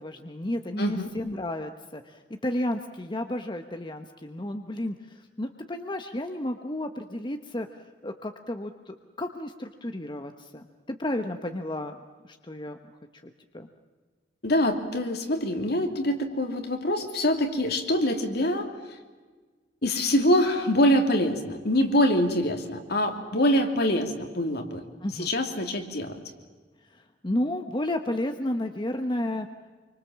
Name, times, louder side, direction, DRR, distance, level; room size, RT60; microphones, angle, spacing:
voice 1, 0.0-12.0 12.2-12.8 13.1-13.7 25.0-25.3 26.9-29.5, left 1 dB, 25° left, 6 dB, 1.1 m, -32 dB
voice 2, 0.8-1.1 14.4-18.7 19.8-24.8 25.2-26.1, left 1 dB, 60° left, 4 dB, 2.9 m, -24 dB
26.5 x 24.5 x 7.4 m, 1.4 s
head